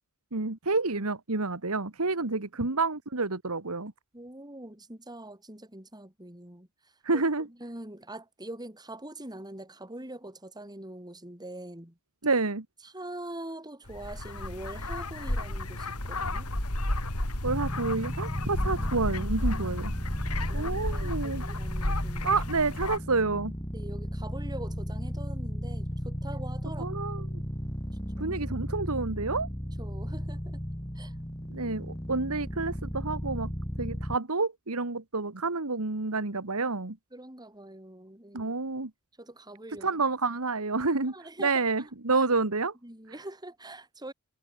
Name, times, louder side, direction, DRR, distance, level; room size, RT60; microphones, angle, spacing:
voice 1, 0.3-3.9 7.0-7.5 12.2-12.6 17.4-19.9 20.5-21.4 22.2-23.5 26.8-27.2 28.2-29.5 31.5-33.5 33.8-37.0 38.3-38.9 39.8-42.7, right 3 dB, 75° right, 1.8 m, -29 dB
voice 2, 4.1-12.0 12.8-16.5 20.4-22.4 23.7-27.3 28.2-28.4 29.8-30.6 30.9-31.2 33.8-34.0 37.1-38.5 39.2-40.0 41.1-42.3 42.8-44.1, right 1 dB, 20° right, 5.8 m, -44 dB
sound 1, 13.9-23.0, left 1 dB, 85° left, 5.5 m, -32 dB
sound 2, 17.4-34.2, equal, 15° left, 6.0 m, -35 dB
head